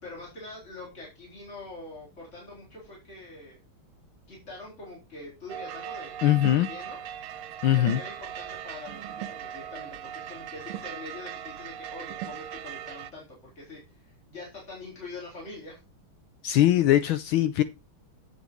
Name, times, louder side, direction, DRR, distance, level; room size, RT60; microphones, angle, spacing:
voice 1, 0.0-3.6 4.3-6.1 6.5-7.0 7.7-15.8, left 2 dB, 30° left, 4.3 m, -44 dB
sound 1, 5.5-13.1, right 10 dB, 85° right, 1.7 m, -39 dB
voice 2, 6.2-6.7 7.6-8.0 16.4-17.6, left 13 dB, 75° left, 1.4 m, -21 dB
8.9 x 8.1 x 3.1 m
omnidirectional pair, 2.4 m